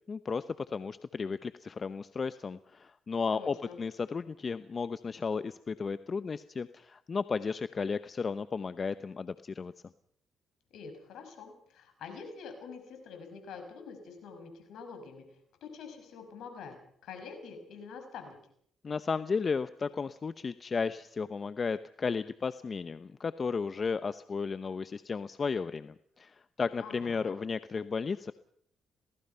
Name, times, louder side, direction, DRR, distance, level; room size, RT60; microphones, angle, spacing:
voice 1, 0.1-9.7 18.8-28.3, left 5 dB, 45° left, 13 dB, 0.9 m, -34 dB
voice 2, 3.3-3.8 10.7-15.2 15.6-16.8 17.0-18.4 26.8-27.3, left 5 dB, 75° left, 6 dB, 5.9 m, -46 dB
27.5 x 18.5 x 5.7 m, 0.64 s
supercardioid pair, 60°, 0 cm